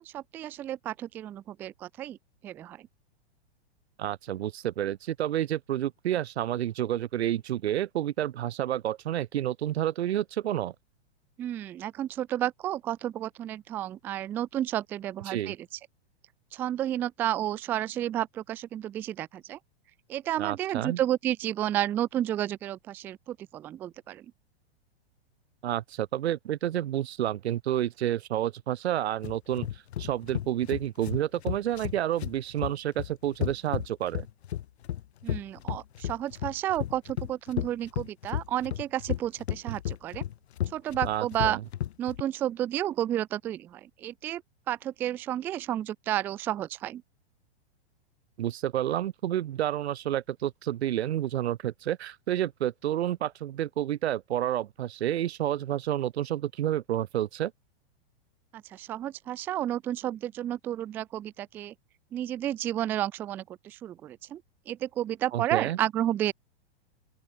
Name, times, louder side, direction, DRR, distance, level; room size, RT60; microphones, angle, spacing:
voice 1, 0.0-2.2 2.4-2.9 11.4-15.6 16.5-19.6 20.1-24.3 35.2-40.3 40.7-41.6 42.0-47.0 58.5-61.7 62.1-66.3, right 12 dB, 5° right, 0.3 m, -31 dB
voice 2, 4.0-10.7 15.3-15.5 20.4-21.0 25.6-34.3 41.0-41.6 48.4-57.5 65.3-65.8, right 12 dB, 85° right, 0.9 m, -30 dB
sound 1, 29.2-42.2, left 11 dB, 80° left, 1.2 m, -33 dB
open air
hypercardioid pair, 160°, 32 cm